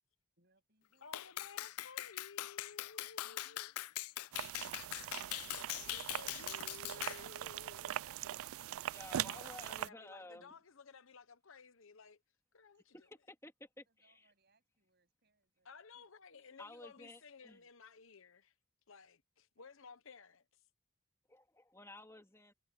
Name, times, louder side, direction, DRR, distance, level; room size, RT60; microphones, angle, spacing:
voice 1, 0.4-1.8 3.2-3.9 12.7-13.0 13.9-16.0 16.3-16.7 19.6-19.9, right 2 dB, 45° right, 7.9 m, -78 dB
voice 2, 1.0-3.7 5.3-8.0 9.2-12.2 12.5-12.9 15.6-18.5 18.9-20.6, left 5 dB, 65° left, 1.0 m, -56 dB
Clapping, 1.1-7.2, left 15 dB, 85° left, 0.4 m, -42 dB
sound 1, 4.3-9.9, right 11 dB, 75° right, 0.3 m, -42 dB
voice 3, 8.9-10.6 13.3-14.3 16.6-17.6 21.3-22.5, left 2 dB, 10° left, 2.8 m, -54 dB
head